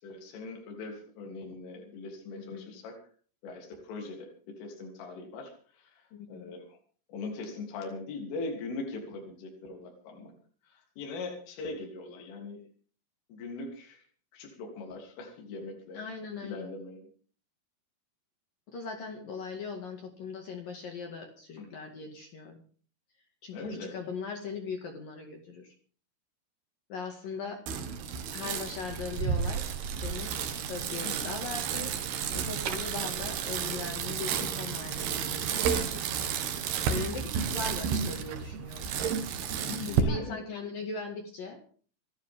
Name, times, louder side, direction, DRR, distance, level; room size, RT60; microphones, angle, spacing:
voice 1, 0.0-3.0 3.4-6.8 7.1-10.3 10.6-12.6 13.3-14.1 14.3-16.0 16.4-17.1 21.6-21.8 23.5-24.0 28.4-28.5 31.0-31.3 34.3-34.5 39.6-40.4, left 3 dB, 75° left, 0 dB, 5.7 m, -41 dB
voice 2, 2.3-2.7 6.1-6.5 15.9-16.7 18.7-22.6 23.4-25.7 26.9-27.6 28.3-29.7 30.0-30.3 30.7-31.9 32.3-36.0 36.9-38.9 39.8-41.7, left 4 dB, 55° left, 3 dB, 3.1 m, -39 dB
Bicycle, 27.7-40.0, right 7 dB, 65° right, 3.2 m, -32 dB
27.0 x 12.0 x 3.7 m, 0.43 s
omnidirectional pair, 5.8 m